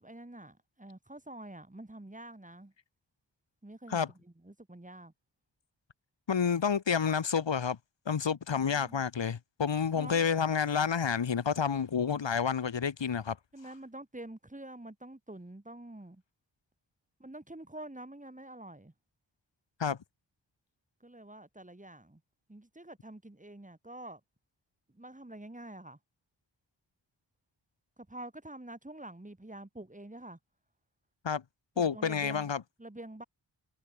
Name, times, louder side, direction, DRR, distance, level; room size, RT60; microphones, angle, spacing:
voice 1, 0.0-2.7 3.6-5.1 8.5-9.0 9.9-10.2 13.5-16.2 17.2-18.9 21.0-22.2 22.5-24.2 24.9-26.0 28.0-30.4 31.7-32.5 32.8-33.2, right 1 dB, 15° right, 4.5 m, -47 dB
voice 2, 6.3-7.8 8.1-13.4 19.8-20.0 31.2-31.4 31.8-32.6, left 6 dB, 85° left, 2.3 m, -29 dB
wide cardioid pair, 70°, 43 cm